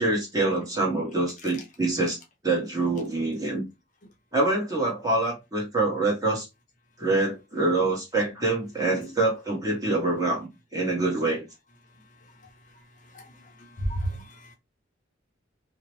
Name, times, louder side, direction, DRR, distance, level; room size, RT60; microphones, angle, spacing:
voice 1, 0.0-2.2 2.4-3.6 4.3-6.5 7.0-11.5, right 2 dB, 20° right, 1.1 m, -25 dB
voice 2, 13.8-14.5, right 1 dB, 40° left, 0.6 m, -31 dB
2.7 x 2.1 x 3.0 m
head